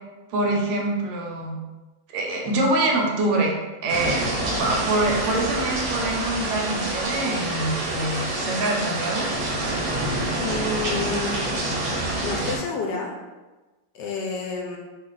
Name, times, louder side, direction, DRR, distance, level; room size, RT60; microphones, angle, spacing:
voice 1, 0.3-1.6 2.1-3.5 3.8-9.3, right 2 dB, 75° right, 0 dB, 1.3 m, -25 dB
sound 1, 3.9-12.6, right 1 dB, 60° right, 1.0 m, -27 dB
voice 2, 10.4-11.4 12.2-13.1 13.9-14.8, left 4 dB, 75° left, 0 dB, 1.1 m, -29 dB
3.2 x 2.4 x 3.8 m, 1.2 s
omnidirectional pair, 2.1 m